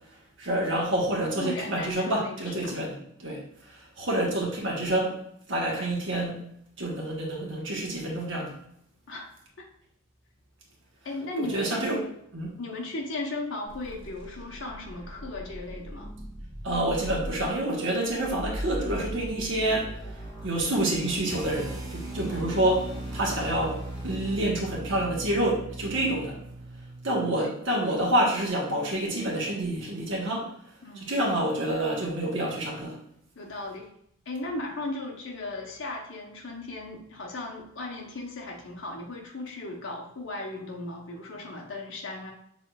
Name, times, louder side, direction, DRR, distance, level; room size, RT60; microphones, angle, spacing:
voice 1, 0.4-3.4 4.0-5.2 5.5-6.4 6.8-8.5 11.4-12.0 12.3-12.5 16.6-19.9 20.4-22.8 23.1-26.4 27.0-30.5 31.0-33.0, right 1 dB, 65° right, -2 dB, 1.2 m, -28 dB
voice 2, 1.4-2.8 4.2-4.3 9.1-9.3 9.6-9.7 11.0-12.1 12.6-16.2 22.3-22.6 27.4-27.5 30.8-31.2 33.4-33.9 34.3-42.3, left 2 dB, 70° left, -1 dB, 0.9 m, -36 dB
sound 1, 13.7-24.5, equal, 25° left, 1.3 m, -40 dB
sound 2, 21.3-27.4, right 2 dB, 15° right, 0.5 m, -38 dB
6.1 x 3.6 x 2.3 m, 0.72 s
head